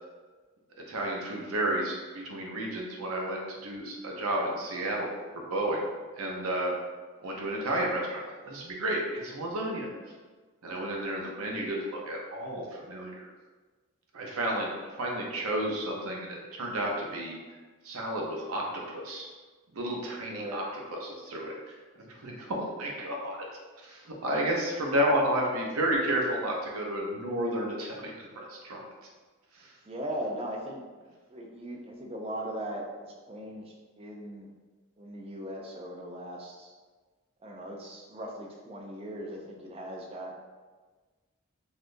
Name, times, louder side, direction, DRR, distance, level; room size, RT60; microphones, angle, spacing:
voice 1, 0.9-5.1 5.5-5.8 6.1-6.7 7.2-9.9 10.6-13.3 14.1-17.4 17.8-19.3 19.7-20.6 20.9-23.5 23.8-28.8 29.5-29.7, right 1 dB, 75° right, -1 dB, 0.6 m, -32 dB
voice 2, 20.3-20.6 29.9-34.5 35.0-36.7 37.4-40.4, equal, 25° right, 0 dB, 0.4 m, -39 dB
3.5 x 2.4 x 2.5 m, 1.4 s
head